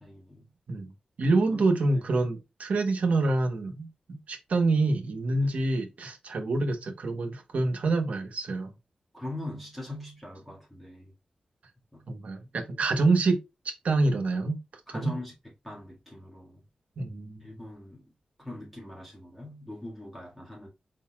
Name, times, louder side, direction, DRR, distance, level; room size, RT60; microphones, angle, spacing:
voice 1, 0.0-0.4 1.5-1.7 5.4-5.5 9.1-11.1 11.9-12.1 14.9-15.3 15.6-16.6 17.4-18.0 18.4-20.7, left 1 dB, 5° left, 1.8 m, -41 dB
voice 2, 1.2-8.7 12.1-13.4 13.8-14.6 14.9-15.1 17.0-17.6, right 3 dB, 70° right, 1.0 m, -26 dB
4.7 x 3.9 x 2.3 m
wide cardioid pair, 140°, 2 cm